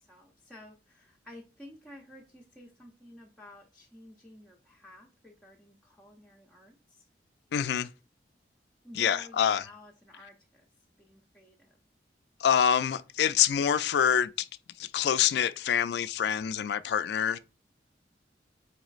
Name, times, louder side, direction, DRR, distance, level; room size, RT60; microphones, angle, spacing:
voice 1, 0.0-7.0 8.8-10.7 11.0-11.8, left 1 dB, 5° left, 0.5 m, -52 dB
voice 2, 7.5-7.9 8.9-9.6 12.4-14.5 14.8-17.4, left 8 dB, 70° left, 0.3 m, -26 dB
4.6 x 3.0 x 2.4 m
head